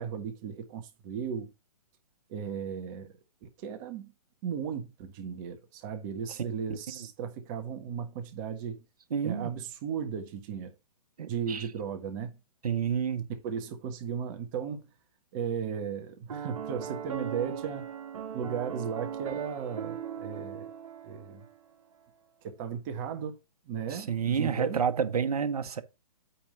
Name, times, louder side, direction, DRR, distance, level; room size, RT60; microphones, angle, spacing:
voice 1, 0.0-1.5 2.3-3.1 3.4-4.1 4.4-8.8 9.2-10.7 11.3-12.4 13.4-14.8 15.3-17.9 18.3-20.6 21.0-21.4 22.4-23.3 23.7-24.8, right 7 dB, 30° right, 1.4 m, -36 dB
voice 2, 9.1-9.5 11.2-11.7 12.6-13.3 23.9-25.8, right 7 dB, 75° right, 1.2 m, -29 dB
Piano, 16.3-21.6, right 8 dB, 60° right, 2.4 m, -38 dB
8.6 x 3.6 x 5.4 m
hypercardioid pair, 145°, 20 cm